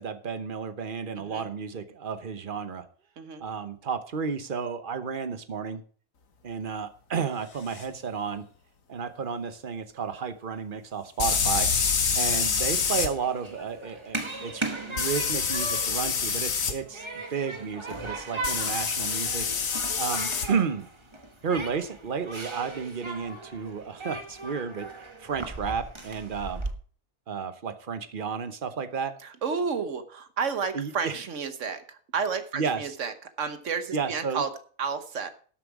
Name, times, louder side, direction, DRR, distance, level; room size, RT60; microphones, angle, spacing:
voice 1, 0.0-2.8 3.4-5.8 6.4-8.5 8.9-11.7 12.2-19.5 20.0-20.9 21.4-24.9 25.2-26.6 27.3-29.1 30.7-31.2 32.5-33.0 33.9-34.4, right 6 dB, 40° right, 11 dB, 1.0 m, -32 dB
voice 2, 1.2-1.5 3.2-3.5 29.2-34.5 34.8-35.3, right 5 dB, 60° right, 10 dB, 1.3 m, -31 dB
sound 1, 7.8-7.9 11.2-13.1 15.0-16.7 18.4-20.5, left 6 dB, 70° left, 1.6 m, -26 dB
Human group actions, 12.4-26.7, right 2 dB, 20° right, 1.2 m, -38 dB
12.5 x 7.6 x 4.8 m, 0.43 s
omnidirectional pair, 1.5 m